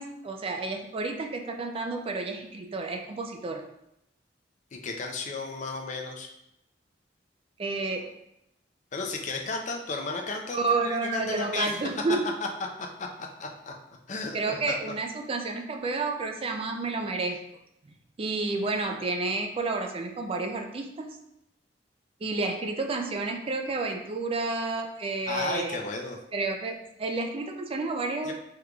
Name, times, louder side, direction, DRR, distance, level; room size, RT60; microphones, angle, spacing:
voice 1, 0.0-3.6 7.6-8.1 10.5-12.2 14.3-17.4 18.2-21.2 22.2-25.8 26.3-28.3, right 3 dB, 30° right, 4 dB, 0.3 m, -30 dB
voice 2, 4.7-6.3 8.9-12.0 13.0-13.7 14.1-14.4 14.7-14.8 25.3-26.2 28.2-28.3, left 3 dB, 45° left, 2 dB, 0.5 m, -34 dB
3.7 x 3.1 x 2.3 m, 0.82 s
head